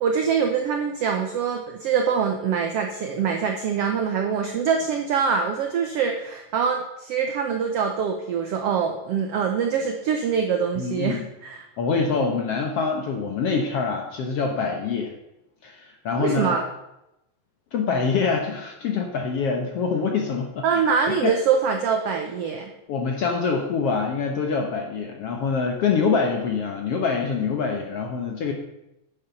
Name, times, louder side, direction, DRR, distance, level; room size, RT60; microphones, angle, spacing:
voice 1, 0.0-11.6 16.2-16.6 20.6-22.7, right 6 dB, 85° right, 4 dB, 1.3 m, -24 dB
voice 2, 10.8-11.2 11.8-15.1 15.6-16.6 17.7-20.8 21.1-21.3 22.9-28.5, left 5 dB, 65° left, 2 dB, 1.5 m, -25 dB
9.9 x 6.8 x 5.8 m, 0.88 s
omnidirectional pair, 3.8 m